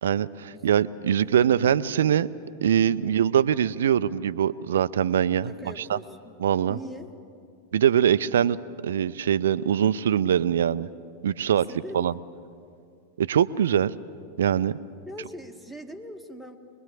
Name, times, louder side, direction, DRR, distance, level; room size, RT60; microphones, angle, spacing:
voice 1, 0.0-2.3 2.6-5.5 5.9-6.0 6.4-6.8 7.7-8.6 8.8-10.9 11.2-11.7 11.9-12.1 13.2-13.9 14.4-14.8, right 9 dB, 65° right, 16 dB, 0.6 m, -22 dB
voice 2, 1.2-1.8 2.0-2.3 3.0-3.3 5.4-6.4 6.7-7.1 11.7-12.0 15.1-16.6, equal, 5° left, 4 dB, 1.7 m, -42 dB
24.0 x 21.5 x 8.4 m, 2.5 s
figure-of-eight pair, 90°, 0 cm